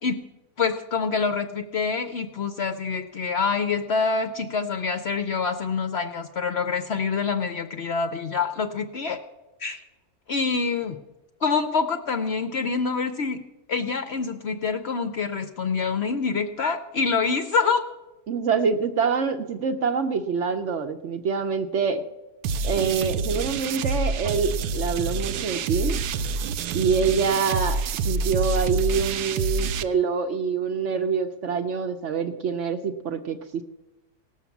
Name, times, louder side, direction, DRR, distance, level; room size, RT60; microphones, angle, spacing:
voice 1, 0.6-9.2 9.6-9.8 10.3-11.0 11.4-13.4 13.7-17.8, left 5 dB, 60° left, 7 dB, 0.7 m, -26 dB
voice 2, 18.3-22.0 22.6-26.0 26.7-33.6, right 5 dB, 60° right, 7 dB, 0.8 m, -25 dB
sound 1, 22.4-29.8, right 4 dB, 85° right, 1.2 m, -27 dB
17.5 x 6.5 x 7.1 m, 1.1 s
omnidirectional pair, 1.7 m